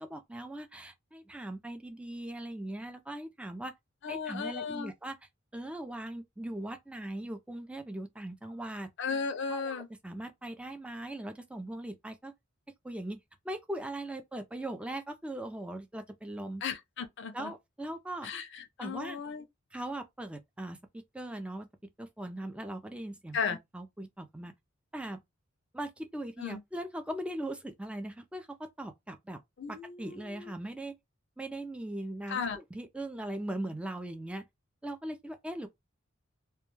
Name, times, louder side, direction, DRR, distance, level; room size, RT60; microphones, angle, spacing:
voice 1, 0.0-3.7 4.1-5.2 5.5-8.9 9.5-12.3 12.8-16.6 17.3-18.3 18.8-19.2 19.7-21.7 22.0-24.5 24.9-25.2 25.7-29.4 29.7-31.0 31.4-34.5 34.8-35.7, right 1 dB, 5° right, 0.4 m, -40 dB
voice 2, 4.0-4.9 9.0-9.9 16.6-17.5 18.2-19.4 23.3-23.6 26.4-26.6 29.6-30.5 32.3-32.6, left 5 dB, 60° left, 0.5 m, -35 dB
2.2 x 2.2 x 3.0 m
head